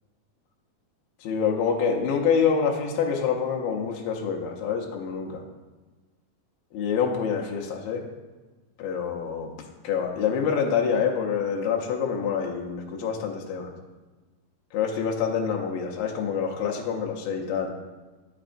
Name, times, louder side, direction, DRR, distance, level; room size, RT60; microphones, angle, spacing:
voice 1, 1.2-5.4 6.7-8.0 8.8-9.5 9.8-13.7 14.7-17.7, left 6 dB, 90° left, 0 dB, 2.5 m, -26 dB
8.6 x 5.9 x 2.5 m, 1.2 s
omnidirectional pair, 3.9 m